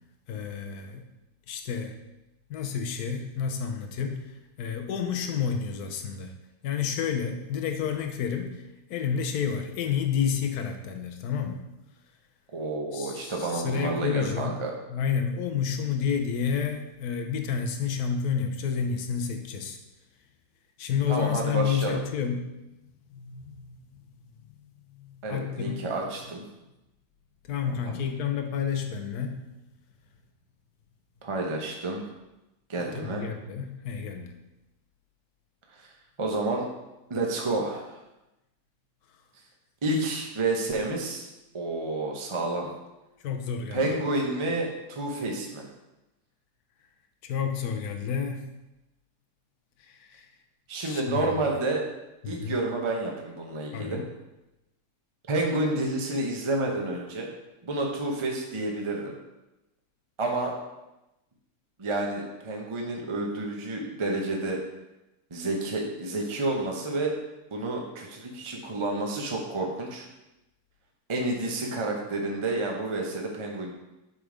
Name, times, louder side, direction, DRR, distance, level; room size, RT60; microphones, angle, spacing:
voice 1, 0.3-1.1 1.5-1.9 2.5-6.3 6.6-11.6 12.9-14.6 14.9-19.8 20.8-22.5 23.1-23.8 24.9-25.8 27.5-29.5 32.8-34.3 43.2-44.0 47.2-48.5 49.8-50.3 50.8-51.3 52.2-52.6 53.7-54.0, left 7 dB, 70° left, 5 dB, 1.3 m, -30 dB
voice 2, 12.5-14.7 21.1-22.0 25.2-26.4 27.8-28.0 31.2-32.0 32.7-33.2 35.8-35.9 36.2-36.7 37.1-38.0 39.8-41.3 41.5-42.7 43.7-45.6 50.7-51.8 52.2-54.0 55.3-57.3 57.6-59.1 60.2-60.5 61.8-64.6 65.3-67.1 67.5-70.1 71.1-73.7, right 2 dB, 25° right, 0 dB, 0.7 m, -29 dB
7.9 x 3.7 x 5.0 m, 0.97 s
omnidirectional pair, 1.8 m